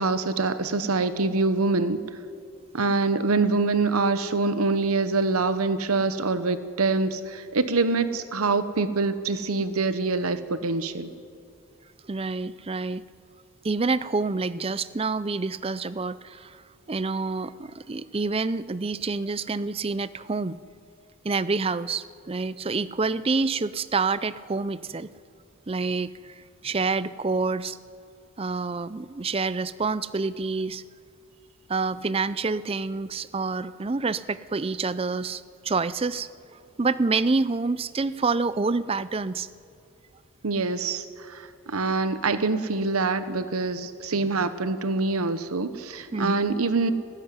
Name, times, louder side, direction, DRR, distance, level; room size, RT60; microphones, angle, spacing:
voice 1, 0.0-2.0 2.7-11.1 40.4-46.9, right 3 dB, 90° right, 12 dB, 1.0 m, -25 dB
voice 2, 12.1-13.0 13.6-20.6 21.2-25.1 25.7-27.8 28.4-30.8 31.7-39.5 46.1-46.5, right 4 dB, 25° right, 16 dB, 0.5 m, -27 dB
18.5 x 17.5 x 9.6 m, 2.4 s
head